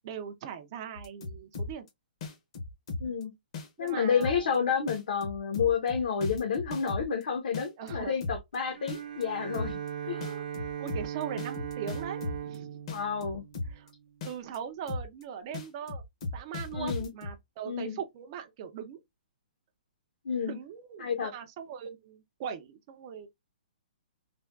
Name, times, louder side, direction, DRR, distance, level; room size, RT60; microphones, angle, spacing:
voice 1, 0.0-1.9 3.8-4.7 7.8-8.2 10.0-10.5 10.8-12.8 13.6-13.9 14.2-16.0 16.3-19.0 20.4-23.3, right 8 dB, 25° right, 0.3 m, -40 dB
sound 1, 1.0-1.9 2.2-3.2 3.5-3.9 4.2-4.6 4.9-7.2 7.5-8.6 8.9-9.2 9.5-9.9 10.2-12.6 12.9-13.9 14.2-14.6 14.9-15.2 15.5-17.3, left 3 dB, 35° left, 0.7 m, -36 dB
voice 2, 3.0-3.3 3.8-9.8 10.1-10.2 12.9-13.4 16.7-17.1 17.7-18.0 20.2-20.6 21.0-21.3, left 6 dB, 65° left, 0.8 m, -30 dB
Bowed string instrument, 8.7-14.2, right 9 dB, 65° right, 0.8 m, -39 dB
3.3 x 2.2 x 2.2 m
hypercardioid pair, 175°, 5 cm